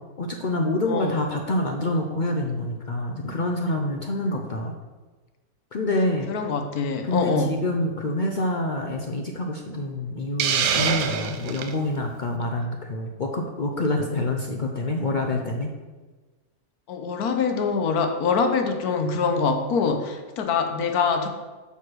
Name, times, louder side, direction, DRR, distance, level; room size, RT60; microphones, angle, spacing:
voice 1, 0.2-4.7 5.7-6.3 7.0-15.7, left 1 dB, 65° left, 2 dB, 0.4 m, -27 dB
voice 2, 6.3-7.5 16.9-21.3, left 5 dB, 80° left, 6 dB, 1.3 m, -24 dB
Hiss, 10.4-11.7, right 7 dB, 75° right, 1.1 m, -24 dB
5.7 x 4.8 x 6.1 m, 1.3 s
omnidirectional pair, 1.6 m